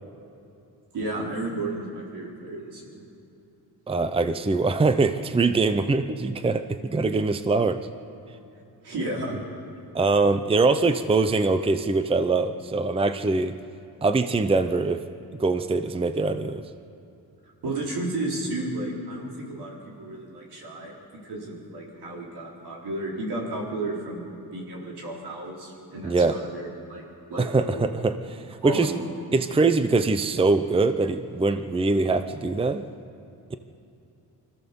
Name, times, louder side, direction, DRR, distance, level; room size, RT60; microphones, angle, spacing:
voice 1, 0.9-3.0 8.8-9.4 17.6-24.2 24.5-26.6 26.9-27.0 27.3-27.8 28.6-29.0, right 2 dB, 80° right, -2 dB, 4.7 m, -33 dB
voice 2, 3.9-7.8 9.9-13.5 14.0-15.0 15.4-16.6 26.0-26.4 27.4-28.9 29.3-32.8 33.5-33.6, right 3 dB, 15° right, 10 dB, 0.6 m, -23 dB
25.5 x 14.5 x 7.0 m, 2.7 s
wide cardioid pair, 150°, 38 cm